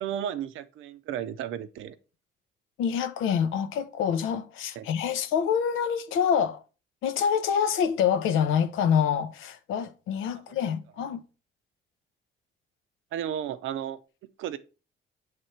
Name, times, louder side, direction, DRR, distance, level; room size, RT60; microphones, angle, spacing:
voice 1, 0.0-2.0 4.8-4.9 13.1-14.0 14.4-14.6, right 10 dB, 85° right, 0.6 m, -33 dB
voice 2, 2.8-6.6 7.0-11.2, left 7 dB, 90° left, 0.7 m, -26 dB
6.6 x 3.4 x 4.3 m
cardioid pair, 90°, 20 cm